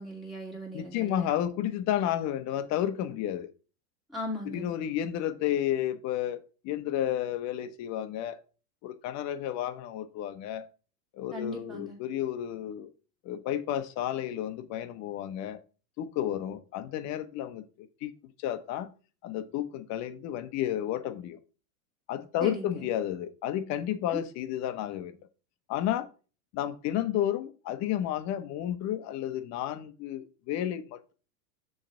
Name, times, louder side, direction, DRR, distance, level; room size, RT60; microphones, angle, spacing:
voice 1, 0.0-1.3 4.1-4.7 11.3-12.0 22.4-22.9 24.1-24.2, equal, ahead, 2.6 m, -38 dB
voice 2, 0.7-3.5 4.5-8.4 8.8-10.7 11.2-12.9 13.2-15.6 16.0-18.1 18.4-18.9 19.2-21.4 22.1-25.2 25.7-26.1 26.5-31.0, left 11 dB, 35° left, 0.7 m, -32 dB
6.4 x 3.2 x 5.5 m
supercardioid pair, 130°, 46 cm